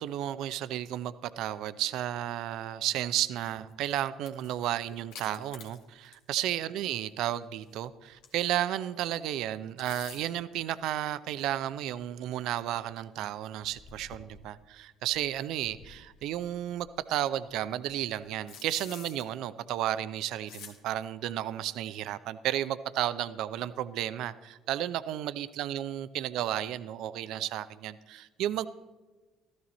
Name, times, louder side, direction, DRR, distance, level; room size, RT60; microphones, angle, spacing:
voice 1, 0.0-28.7, right 12 dB, 65° right, 14 dB, 0.5 m, -33 dB
sound 1, 3.5-3.7 4.2-6.3 6.6-6.8 7.6-8.7 9.6-10.5 11.4-11.5 12.0-12.1 12.5-12.6 12.8-12.9 13.6-14.6 15.1-16.9 17.4-19.3 20.5-20.8, left 6 dB, 70° left, 1.4 m, -50 dB
14.0 x 12.5 x 4.1 m, 1.2 s
hypercardioid pair, 65°, 0 cm